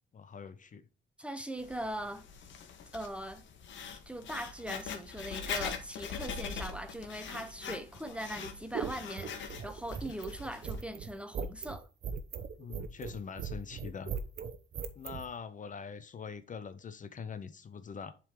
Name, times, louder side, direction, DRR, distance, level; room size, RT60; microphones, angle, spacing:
voice 1, 0.1-0.9 12.6-14.1 15.0-18.1, left 6 dB, 40° left, 0.7 m, -43 dB
voice 2, 1.2-2.2 2.9-3.4 4.1-11.9, right 1 dB, 5° right, 0.8 m, -40 dB
Writing, 1.6-10.8, left 6 dB, 70° left, 1.2 m, -42 dB
sound 1, 8.4-15.3, right 6 dB, 55° right, 0.9 m, -39 dB
7.4 x 3.9 x 4.8 m
cardioid pair, 90°, 20 cm